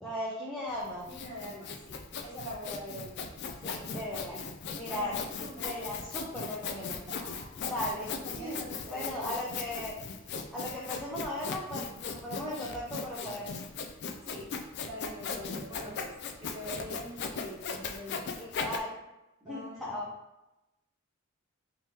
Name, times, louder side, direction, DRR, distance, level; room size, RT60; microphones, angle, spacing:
voice 1, 0.0-1.1 3.6-4.4 4.7-5.1 5.6-7.0 7.6-8.6 8.9-9.9 10.5-13.5 18.4-19.0 19.4-20.1, left 1 dB, ahead, -7 dB, 0.5 m, -37 dB
Sawing, 0.8-18.8, left 5 dB, 55° left, 0.4 m, -38 dB
voice 2, 1.1-3.2 3.7-4.4 4.9-5.1 5.4-5.9 7.1-7.5 8.2-9.2 14.2-16.1 16.4-18.5 19.4-19.9, equal, 15° right, -10 dB, 1.0 m, -44 dB
3.6 x 2.9 x 2.8 m, 0.96 s
head